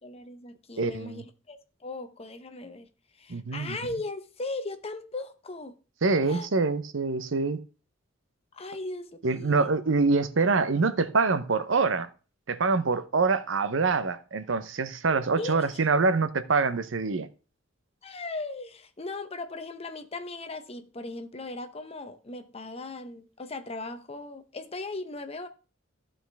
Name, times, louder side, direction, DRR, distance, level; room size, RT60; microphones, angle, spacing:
voice 1, 0.0-2.9 3.2-5.8 6.3-6.5 8.5-9.7 15.4-15.8 18.0-25.5, left 2 dB, 30° left, 0.8 m, -38 dB
voice 2, 0.8-1.2 3.3-3.8 6.0-7.6 9.2-12.1 12.5-17.3, right 4 dB, 75° right, 0.7 m, -25 dB
14.0 x 5.0 x 3.4 m
head